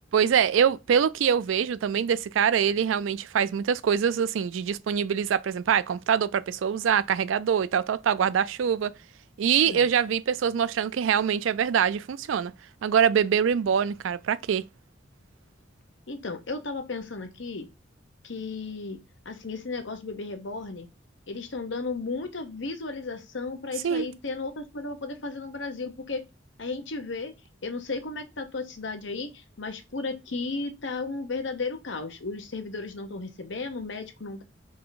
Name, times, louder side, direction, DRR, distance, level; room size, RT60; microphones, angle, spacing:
voice 1, 0.1-8.9 9.4-12.5 12.8-14.6 23.8-24.1, right 7 dB, 80° right, 0.4 m, -24 dB
voice 2, 16.1-17.7 18.2-19.0 19.2-20.9 21.3-26.2 26.6-27.3 27.6-34.4, left 3 dB, 65° left, 0.9 m, -34 dB
3.8 x 3.2 x 4.0 m
head